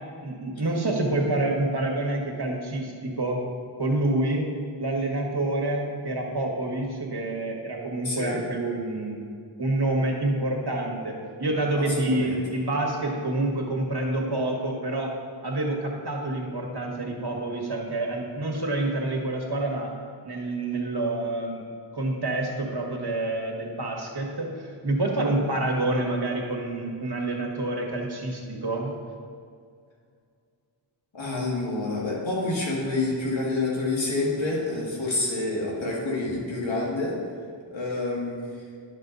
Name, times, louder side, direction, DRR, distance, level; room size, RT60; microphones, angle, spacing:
voice 1, 0.2-3.4 3.8-4.5 4.8-9.3 9.6-15.1 15.4-19.9 20.2-21.6 21.9-28.9, right 2 dB, 60° right, 0 dB, 1.6 m, -27 dB
voice 2, 8.0-8.4 11.8-11.9 12.1-12.4 31.1-37.2 37.7-38.4, left 2 dB, 80° left, -4 dB, 2.2 m, -28 dB
11.0 x 5.6 x 4.0 m, 2.2 s
wide cardioid pair, 45°, 45 cm